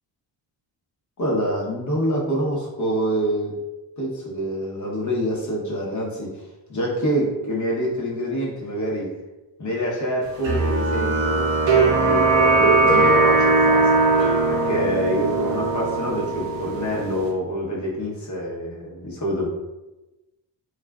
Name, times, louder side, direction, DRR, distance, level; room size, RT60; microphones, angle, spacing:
voice 1, 1.2-3.6 4.0-9.1 9.6-14.0 14.5-19.5, equal, 35° left, -3 dB, 0.9 m, -26 dB
sound 1, 10.4-17.3, right 3 dB, 65° right, 0.7 m, -19 dB
2.4 x 2.3 x 2.3 m, 1.0 s
supercardioid pair, 60°, 49 cm